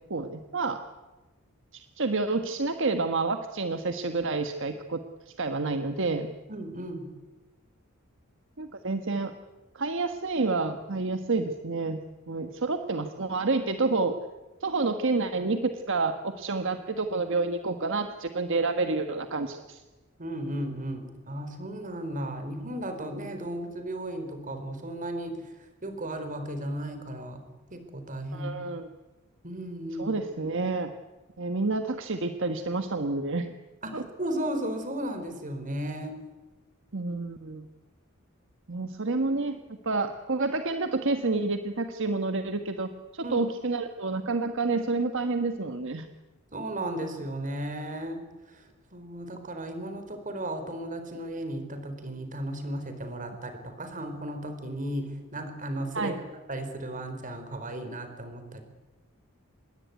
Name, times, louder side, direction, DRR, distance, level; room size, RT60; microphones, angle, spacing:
voice 1, 0.1-0.8 1.7-6.3 8.6-9.3 9.7-12.0 12.3-14.1 14.6-19.8 28.3-28.9 30.0-30.9 31.4-33.5 33.9-34.0 36.9-37.7 38.7-39.6 39.8-46.1 55.9-56.2, right 3 dB, 60° right, 7 dB, 1.3 m, -29 dB
voice 2, 6.5-7.1 20.2-25.4 25.8-27.4 27.7-28.5 29.4-30.2 33.8-36.2 43.2-43.5 46.5-48.2 48.5-48.6 48.9-56.1 56.5-58.6, right 1 dB, 40° right, 8 dB, 4.3 m, -35 dB
26.0 x 21.0 x 9.5 m, 1.2 s
head